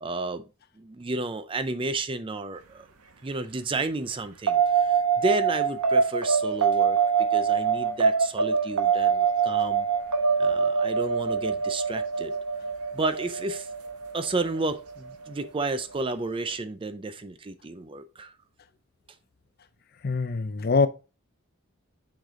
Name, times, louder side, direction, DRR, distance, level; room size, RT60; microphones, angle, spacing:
voice 1, 0.0-0.4 0.8-2.9 3.2-9.9 10.4-12.3 12.9-13.7 14.1-18.3, right 2 dB, 25° right, 0.4 m, -32 dB
sound 1, 4.5-15.2, right 6 dB, 90° right, 1.0 m, -24 dB
voice 2, 20.0-20.9, left 4 dB, 45° left, 0.5 m, -23 dB
6.5 x 5.0 x 3.7 m
head